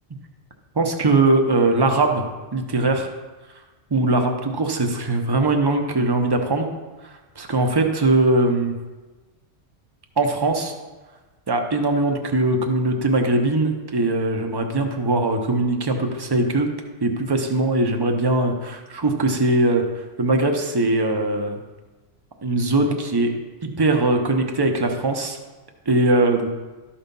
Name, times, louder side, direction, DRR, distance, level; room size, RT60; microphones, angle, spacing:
voice 1, 0.8-2.2 2.5-3.1 3.9-6.7 7.4-8.7 10.2-10.7 11.5-16.7 17.0-19.8 20.2-21.6 22.4-23.3 23.8-25.4 25.9-26.5, right 2 dB, 25° right, 4 dB, 0.8 m, -20 dB
12.5 x 4.3 x 5.3 m, 1.2 s
omnidirectional pair, 1.3 m